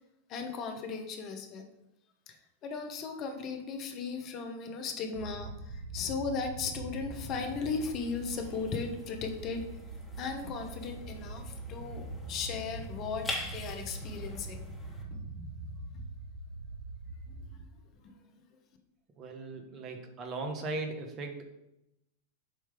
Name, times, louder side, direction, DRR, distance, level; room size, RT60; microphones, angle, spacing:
voice 1, 0.3-1.7 2.3-2.4 2.6-9.6 10.2-14.7 15.1-15.2, left 5 dB, 40° left, 4 dB, 1.2 m, -37 dB
sound 1, 5.1-17.7, right 2 dB, 60° right, 1.1 m, -43 dB
sound 2, 7.3-15.0, left 2 dB, 10° left, 1.8 m, -45 dB
voice 2, 19.2-21.5, right 3 dB, 35° right, 4 dB, 1.3 m, -38 dB
7.8 x 3.2 x 5.2 m, 0.87 s
hypercardioid pair, 95°, 0 cm